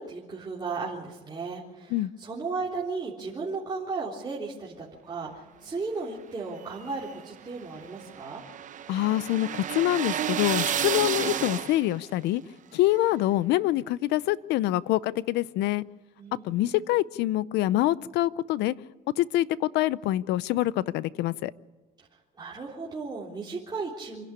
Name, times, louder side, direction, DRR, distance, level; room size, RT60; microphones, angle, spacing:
voice 1, 0.0-8.4 16.2-16.9 22.1-24.2, right 4 dB, 25° right, -5 dB, 3.5 m, -35 dB
sound 1, 6.6-12.1, right 10 dB, 50° right, 0.9 m, -31 dB
voice 2, 8.9-12.4 12.7-15.8 16.4-18.7 19.2-21.5, left 15 dB, 85° left, 19 dB, 0.6 m, -25 dB
26.5 x 11.0 x 9.9 m, 1.2 s
cardioid pair, 110°, 17 cm